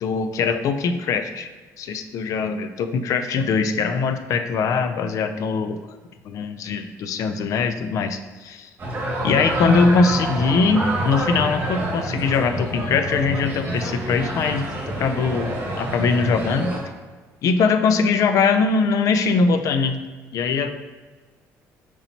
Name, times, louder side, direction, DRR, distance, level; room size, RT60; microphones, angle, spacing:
voice 1, 0.0-1.5 1.8-5.8 6.2-8.7 9.2-16.8 17.4-20.0 20.3-20.7, left 4 dB, 60° left, 9 dB, 0.4 m, -21 dB
sound 1, 8.8-16.8, right 1 dB, 35° right, 1.4 m, -27 dB
4.5 x 3.9 x 2.9 m, 1.4 s
cardioid pair, 110°, 6 cm